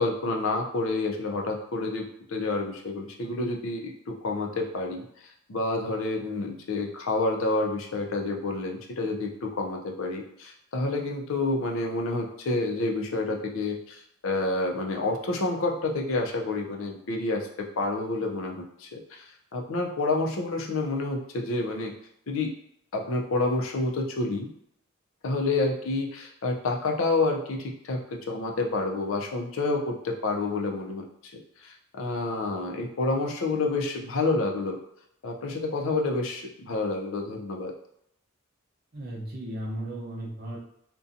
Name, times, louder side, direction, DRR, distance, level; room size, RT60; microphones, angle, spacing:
voice 1, 0.0-5.0 5.5-17.5 17.8-21.9 22.3-22.5 22.9-24.5 25.2-31.0 31.6-34.8 35.2-37.7, left 2 dB, 70° left, 1 dB, 0.5 m, -29 dB
voice 2, 38.9-40.6, right 1 dB, 45° right, -3 dB, 0.6 m, -35 dB
2.6 x 2.2 x 2.5 m, 0.74 s
head